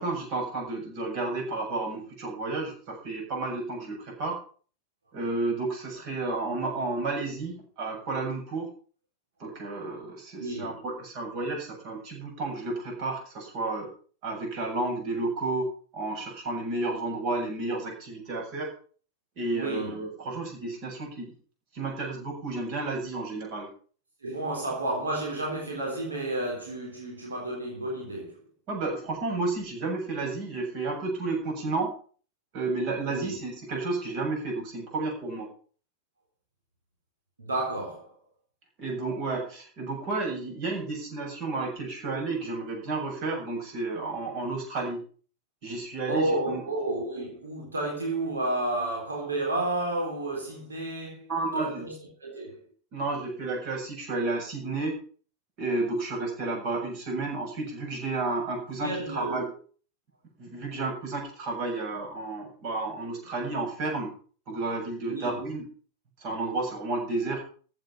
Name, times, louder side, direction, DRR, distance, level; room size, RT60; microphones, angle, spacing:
voice 1, 0.0-4.4 5.1-8.7 9.4-13.9 14.2-15.7 15.9-18.7 19.4-21.3 21.7-23.7 28.7-31.9 32.5-35.5 38.8-45.0 45.6-46.6 51.3-51.9 52.9-55.0 55.6-59.5 60.4-64.1 64.5-65.7 66.2-67.4, right 3 dB, 45° right, 7.7 m, -31 dB
voice 2, 10.4-10.8 19.5-20.0 24.2-28.4 33.1-33.4 37.4-38.1 46.1-51.3 51.5-52.6 58.8-59.5 65.0-65.4, right 2 dB, 75° right, 3.7 m, -31 dB
15.0 x 8.4 x 5.8 m
figure-of-eight pair, 90°, 0 cm